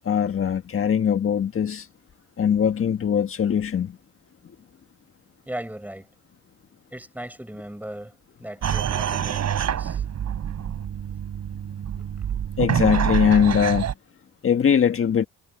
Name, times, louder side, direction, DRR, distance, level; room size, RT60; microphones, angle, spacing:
voice 1, 0.1-1.9 2.4-4.0 12.6-13.9 14.4-15.3, left 8 dB, 45° left, 1.6 m, -21 dB
voice 2, 5.5-6.1 6.9-10.0, right 1 dB, 5° right, 7.1 m, -37 dB
sound 1, 8.6-13.9, right 9 dB, 60° right, 6.1 m, -26 dB
cardioid pair, 90°, 30 cm